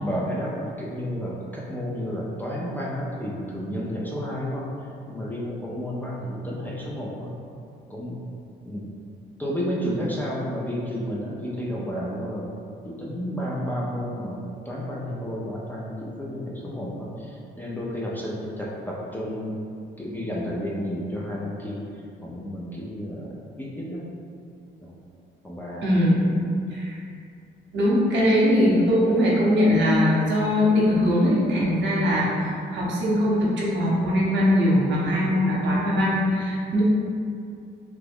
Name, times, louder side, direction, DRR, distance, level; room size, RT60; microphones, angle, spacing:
voice 1, 0.0-4.7 5.1-7.3 7.9-8.2 8.6-8.9 9.4-12.5 12.8-19.7 20.0-21.8 22.2-24.0 24.8-24.9 25.4-25.9, equal, 10° left, -5 dB, 0.5 m, -31 dB
voice 2, 25.8-26.2 26.7-27.0 27.7-36.8, left 1 dB, 65° right, -5 dB, 0.9 m, -21 dB
3.0 x 2.2 x 3.5 m, 2.5 s
cardioid pair, 90°, 20 cm